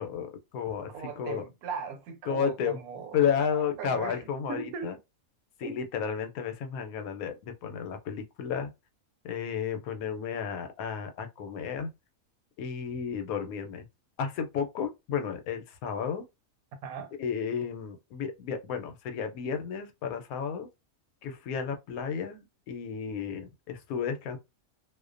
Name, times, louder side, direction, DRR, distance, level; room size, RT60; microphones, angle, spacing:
voice 1, 0.0-1.4 2.3-2.8 3.1-5.0 5.6-8.7 9.2-11.9 12.6-13.9 14.2-16.2 17.2-20.7 21.2-24.4, left 7 dB, 80° left, 1.0 m, -32 dB
voice 2, 0.9-3.5 3.8-4.2 4.5-4.9 5.6-5.8 16.8-17.1, right 6 dB, 80° right, 1.0 m, -38 dB
2.4 x 2.1 x 2.4 m
omnidirectional pair, 1.5 m